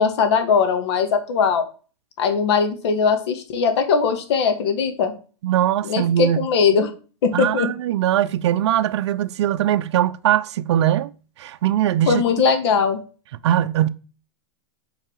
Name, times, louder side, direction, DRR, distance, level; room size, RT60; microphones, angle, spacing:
voice 1, 0.0-1.7 2.2-5.1 5.8-6.9 7.2-7.7 12.1-13.0, left 6 dB, 65° left, 2.6 m, -20 dB
voice 2, 5.4-6.4 7.3-11.1 11.4-12.2 13.4-13.9, right 11 dB, 65° right, 0.7 m, -20 dB
8.5 x 4.9 x 7.5 m
supercardioid pair, 150°, 15 cm